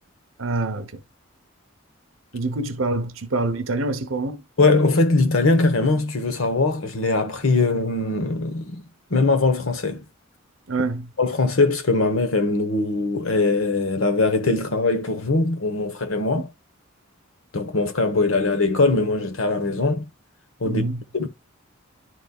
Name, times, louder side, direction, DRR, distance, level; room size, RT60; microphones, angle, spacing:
voice 1, 0.4-1.0 2.3-4.4 10.7-11.1 20.6-21.0, right 2 dB, 75° right, 0.9 m, -26 dB
voice 2, 4.6-8.8 9.1-10.0 11.2-16.5 17.5-20.1 20.6-20.8 21.1-21.3, left 3 dB, 80° left, 1.1 m, -21 dB
11.0 x 4.1 x 2.3 m
head